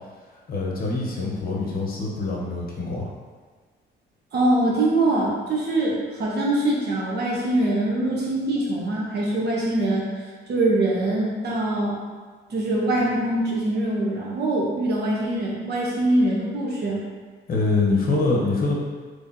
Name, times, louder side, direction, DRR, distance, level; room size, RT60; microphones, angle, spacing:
voice 1, 0.5-3.1 17.5-18.7, left 3 dB, 50° left, -2 dB, 0.9 m, -24 dB
voice 2, 4.3-10.1 10.5-12.0 12.5-17.0, right 1 dB, 55° right, -4 dB, 1.1 m, -23 dB
3.6 x 3.2 x 2.7 m, 1.5 s
cardioid pair, 90°, 20 cm